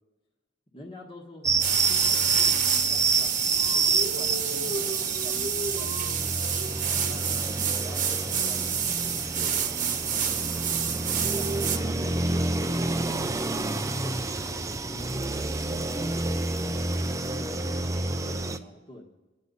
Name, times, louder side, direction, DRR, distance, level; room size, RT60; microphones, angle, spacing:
voice 1, 0.7-6.4 7.0-10.4 11.1-12.9 13.7-15.5 16.6-17.9 18.2-19.2, left 1 dB, 25° left, -2 dB, 1.3 m, -47 dB
sound 1, 1.4-18.6, right 3 dB, 15° right, 0.5 m, -29 dB
sound 2, 1.6-11.8, right 7 dB, 40° right, 1.1 m, -28 dB
27.5 x 9.6 x 4.0 m, 1.2 s
head